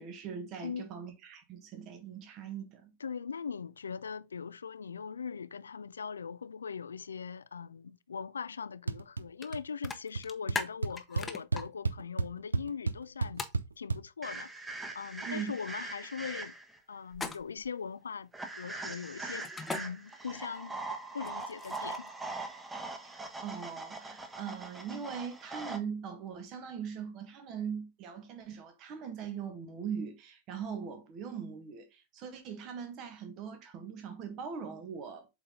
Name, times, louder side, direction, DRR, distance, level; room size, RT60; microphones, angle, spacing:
voice 1, 0.0-2.9 15.3-15.5 23.0-35.3, right 7 dB, 35° right, 1.5 m, -41 dB
voice 2, 0.6-0.9 3.0-13.5 13.8-14.5 14.9-16.5 16.9-20.8 21.1-22.1, left 6 dB, 70° left, 0.4 m, -40 dB
sound 1, 8.9-9.2 9.5-9.9 10.2-10.3 10.5-14.0, right 4 dB, 80° right, 0.5 m, -32 dB
sound 2, 9.4-9.5 9.8-11.6 13.4-13.6 17.1-17.7 19.4-19.8 21.2-22.1, left 4 dB, 15° left, 1.0 m, -38 dB
sound 3, 14.2-16.8 18.3-25.8, right 3 dB, 10° right, 1.3 m, -42 dB
7.8 x 4.2 x 3.7 m
figure-of-eight pair, 90°, 0 cm